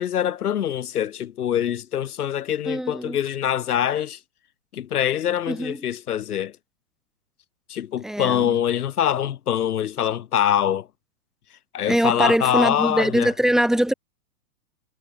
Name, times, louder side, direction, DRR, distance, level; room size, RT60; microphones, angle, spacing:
voice 1, 0.0-4.2 4.7-6.6 7.7-10.9 11.7-13.3, left 10 dB, 80° left, 4.5 m, -24 dB
voice 2, 2.7-3.2 5.5-5.8 8.0-8.6 11.9-13.9, right 1 dB, ahead, 2.1 m, -22 dB
supercardioid pair, 175°, 44 cm